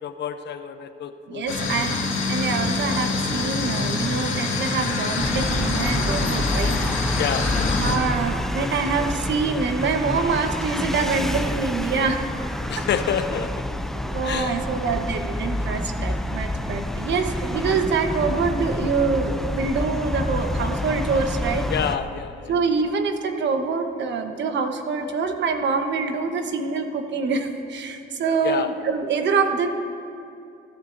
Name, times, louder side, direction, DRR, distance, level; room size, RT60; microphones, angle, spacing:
voice 1, 0.0-1.8 7.1-7.8 12.7-13.6 14.2-14.6 21.7-22.5 28.4-28.7, left 8 dB, 60° left, 10 dB, 0.6 m, -28 dB
voice 2, 1.3-2.0 2.3-7.2 7.8-12.2 12.8-12.9 13.9-21.7 22.5-29.7, right 4 dB, 65° right, 6 dB, 1.0 m, -25 dB
sound 1, 1.5-8.0, left 3 dB, 80° left, 2.0 m, -25 dB
sound 2, 5.2-22.0, left 1 dB, ahead, 0.4 m, -28 dB
16.5 x 11.0 x 2.6 m, 2.5 s
cardioid pair, 90°, 20 cm